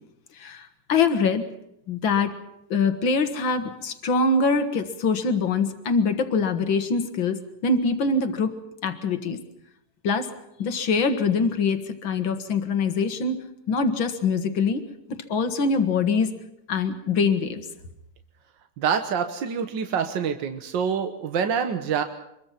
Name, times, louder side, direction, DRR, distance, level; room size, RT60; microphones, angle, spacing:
voice 1, 0.4-1.5 1.9-2.4 2.7-8.5 8.8-9.4 10.0-10.3 10.6-14.8 15.1-16.3 16.7-17.6, left 4 dB, 90° left, 8 dB, 2.2 m, -24 dB
voice 2, 18.8-22.0, right 7 dB, 70° right, 7 dB, 1.9 m, -26 dB
25.5 x 22.0 x 5.8 m, 0.80 s
omnidirectional pair, 2.1 m